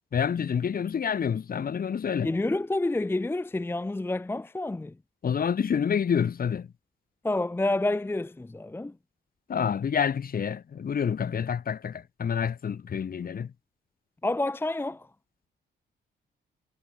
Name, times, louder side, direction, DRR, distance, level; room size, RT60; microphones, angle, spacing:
voice 1, 0.1-2.3 5.2-6.7 9.5-13.5, left 7 dB, 50° left, 2.7 m, -28 dB
voice 2, 2.2-4.9 7.2-8.9 14.2-15.1, left 2 dB, 10° left, 0.7 m, -28 dB
cardioid pair, 90°, 20 cm